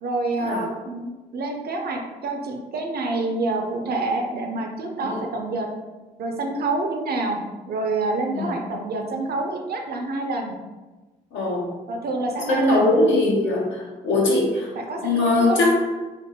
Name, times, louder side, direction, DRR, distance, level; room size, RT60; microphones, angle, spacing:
voice 1, 0.0-5.7 6.2-7.4 7.7-10.5 11.9-12.9 14.8-15.6, right 2 dB, 50° right, 3 dB, 0.5 m, -27 dB
voice 2, 11.3-11.7 12.5-14.7 15.0-15.8, left 2 dB, 70° left, -2 dB, 0.7 m, -21 dB
2.6 x 2.5 x 2.8 m, 1.2 s
hypercardioid pair, 40°, 20 cm